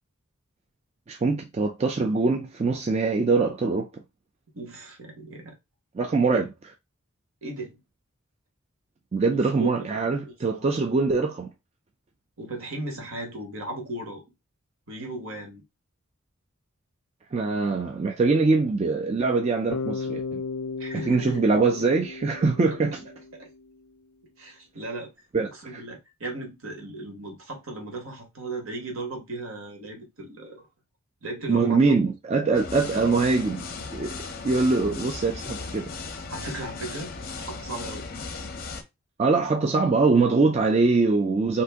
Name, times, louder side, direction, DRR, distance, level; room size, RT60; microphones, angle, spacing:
voice 1, 1.1-4.0 6.0-6.5 9.1-11.5 17.3-20.4 21.1-23.0 25.3-25.8 31.5-33.6 33.9-34.2 34.4-35.9 39.2-41.6, right 3 dB, 30° right, 0.3 m, -23 dB
voice 2, 4.5-5.5 6.2-6.4 7.4-7.8 9.3-9.7 10.2-10.3 12.4-14.2 14.9-15.6 20.8-21.4 23.3-23.5 24.4-25.1 25.5-30.6 31.2-32.0 32.9-33.3 36.3-37.1 37.4-38.0, right 2 dB, 70° right, 1.3 m, -36 dB
Bass guitar, 19.7-23.8, left 4 dB, 90° left, 0.4 m, -35 dB
sound 1, 32.5-38.8, left 4 dB, 45° left, 0.5 m, -37 dB
2.8 x 2.6 x 3.4 m
head